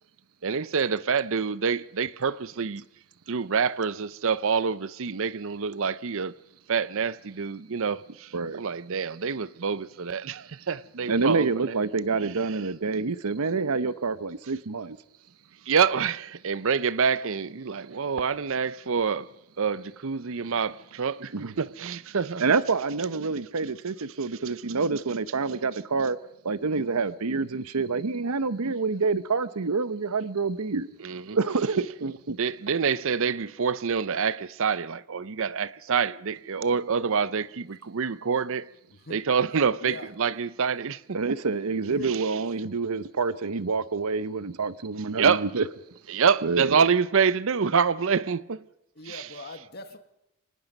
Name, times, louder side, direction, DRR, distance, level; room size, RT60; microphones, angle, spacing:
voice 1, 0.4-2.8 3.3-6.3 6.7-11.8 15.7-19.3 19.6-22.4 31.0-31.4 32.3-38.7 39.1-41.4 42.0-42.4 45.1-45.5 46.1-48.6 49.0-49.4, right 6 dB, 60° right, 0.6 m, -27 dB
voice 2, 11.1-15.0 21.3-21.5 22.4-26.2 26.4-30.9 31.3-32.3 41.1-45.6 46.4-46.8, right 4 dB, 85° right, 0.9 m, -27 dB
voice 3, 49.0-50.0, left 2 dB, 45° left, 1.7 m, -41 dB
25.5 x 19.0 x 5.4 m
head